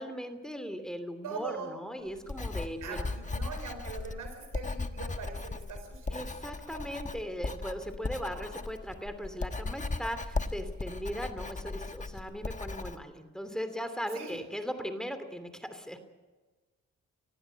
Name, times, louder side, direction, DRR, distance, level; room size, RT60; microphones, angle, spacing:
voice 1, 0.0-3.1 6.1-16.0, equal, ahead, 9 dB, 2.9 m, -38 dB
voice 2, 1.2-1.7 2.8-6.2 14.1-14.4, right 5 dB, 85° right, 6 dB, 4.7 m, -41 dB
Writing, 2.1-13.0, left 3 dB, 25° left, 1.4 m, -37 dB
19.5 x 15.5 x 9.6 m, 1.3 s
cardioid pair, 55°, 31 cm